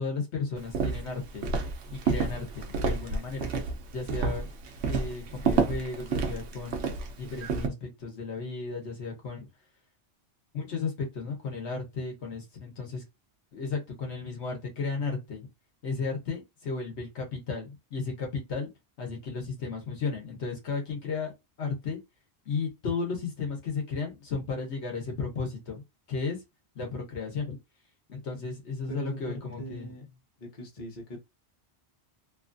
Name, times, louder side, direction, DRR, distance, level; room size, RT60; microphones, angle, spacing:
voice 1, 0.0-1.4 2.0-3.5 3.9-4.5 4.9-6.8 7.2-9.5 10.5-13.0 13.5-15.5 15.8-18.7 19.0-22.0 22.5-26.4 26.7-27.6 28.1-29.9, left 4 dB, 75° left, 1.2 m, -34 dB
Walk footsteps, 0.6-7.7, right 4 dB, 75° right, 1.0 m, -30 dB
voice 2, 29.6-30.1 30.4-31.2, right 1 dB, 45° left, 1.1 m, -41 dB
3.0 x 2.4 x 2.5 m
omnidirectional pair, 1.1 m